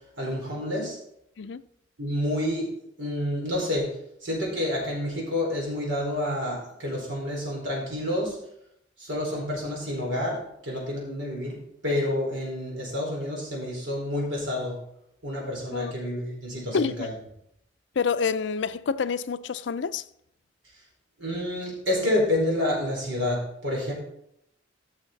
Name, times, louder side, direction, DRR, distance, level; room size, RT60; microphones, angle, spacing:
voice 1, 0.2-1.0 2.0-2.7 3.0-3.9 4.2-8.4 9.0-11.6 11.8-14.8 15.2-17.1 21.2-23.9, left 1 dB, 80° right, 4.7 m, -28 dB
voice 2, 16.7-17.1 18.0-20.0, left 5 dB, 65° left, 0.4 m, -27 dB
14.5 x 6.6 x 4.0 m
head